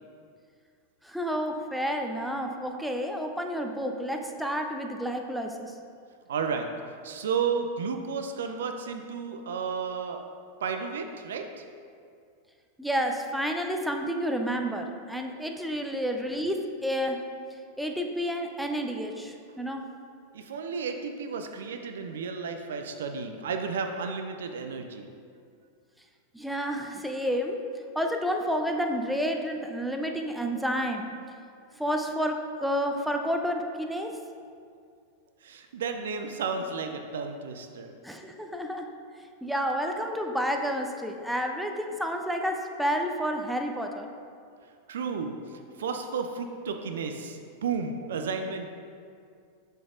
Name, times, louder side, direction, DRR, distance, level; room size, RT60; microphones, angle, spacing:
voice 1, 1.0-5.5 12.8-17.2 17.8-19.9 26.3-27.6 28.0-31.1 31.8-34.1 38.0-38.9 39.4-44.1, equal, ahead, 3 dB, 0.5 m, -30 dB
voice 2, 6.3-6.7 7.0-10.2 10.6-11.6 20.3-25.1 35.4-38.0 44.9-48.7, right 5 dB, 60° right, 5 dB, 0.4 m, -32 dB
6.9 x 6.4 x 2.5 m, 2.3 s
figure-of-eight pair, 90°, 0 cm